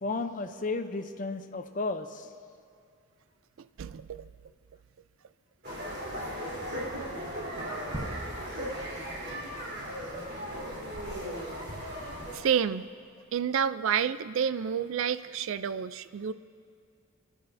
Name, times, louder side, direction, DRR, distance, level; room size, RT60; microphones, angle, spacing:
voice 1, 0.0-2.3, left 3 dB, 40° left, 9 dB, 0.6 m, -33 dB
voice 2, 3.8-4.2 12.3-12.9 13.3-16.3, right 8 dB, 70° right, 14 dB, 0.4 m, -29 dB
sound 1, 5.6-12.3, equal, 50° right, 3.8 m, -37 dB
sound 2, 7.9-9.9, right 1 dB, 20° right, 0.9 m, -41 dB
23.5 x 11.5 x 2.6 m, 2.5 s
head